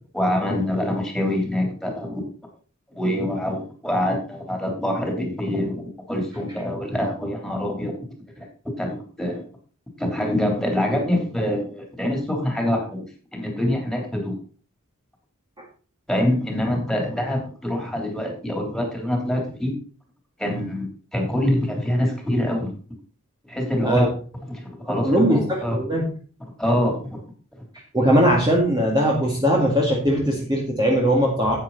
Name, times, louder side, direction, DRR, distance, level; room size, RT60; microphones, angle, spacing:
voice 1, 0.1-2.3 2.9-8.0 8.4-8.5 8.8-9.4 10.0-14.4 16.1-19.8 20.4-22.7 23.5-24.1 24.5-25.8 26.6-27.2, left 1 dB, ahead, 1 dB, 3.3 m, -25 dB
voice 2, 24.9-26.0 27.9-31.6, equal, 20° right, -2 dB, 2.0 m, -20 dB
10.5 x 9.0 x 4.0 m, 0.39 s
head